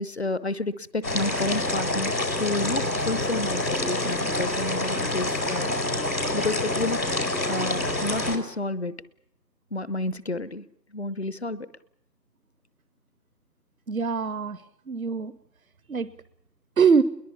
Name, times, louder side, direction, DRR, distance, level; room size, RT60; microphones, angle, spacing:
voice 1, 0.0-5.8 6.3-8.9 9.7-10.6 10.9-11.7, left 2 dB, 40° left, 18 dB, 0.8 m, -30 dB
sound 1, 1.0-8.4, left 2 dB, 90° left, 5.4 m, -27 dB
voice 2, 13.9-15.3 15.9-16.1 16.8-17.0, right 6 dB, 55° right, 16 dB, 0.8 m, -23 dB
22.0 x 20.0 x 8.7 m, 0.80 s
figure-of-eight pair, 170°, 50 cm